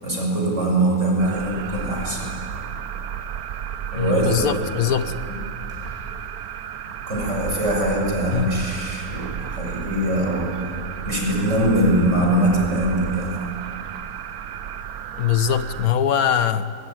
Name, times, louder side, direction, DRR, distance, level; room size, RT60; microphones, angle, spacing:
voice 1, 0.0-2.3 3.9-4.6 5.3-5.4 7.1-10.6 11.0-13.4, right 1 dB, 55° right, -1 dB, 6.3 m, -22 dB
sound 1, 1.2-15.9, right 8 dB, 85° right, 1.3 m, -33 dB
sound 2, 1.7-2.6 2.9-3.0 5.7-7.0, left 1 dB, 25° right, 7.9 m, -44 dB
voice 2, 3.9-5.2 8.3-8.6 15.2-16.7, left 9 dB, 80° left, 11 dB, 1.4 m, -22 dB
22.5 x 22.5 x 9.1 m, 2.3 s
omnidirectional pair, 1.5 m